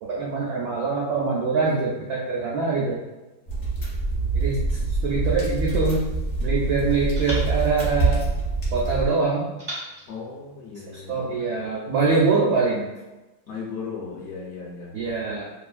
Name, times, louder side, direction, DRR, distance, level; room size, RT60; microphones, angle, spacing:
voice 1, 0.0-3.0 4.3-6.1 6.4-8.2 8.7-9.5 11.1-12.9 14.9-15.4, right 4 dB, 75° right, -4 dB, 0.8 m, -24 dB
sound 1, 3.5-9.1, right 3 dB, 45° left, 1.1 m, -25 dB
sound 2, 7.2-8.8 9.6-11.2, right 1 dB, 40° right, 0.3 m, -41 dB
voice 2, 10.1-11.3 13.5-15.0, left 5 dB, 65° left, -5 dB, 0.7 m, -36 dB
3.0 x 2.5 x 2.4 m, 1.1 s
omnidirectional pair, 2.1 m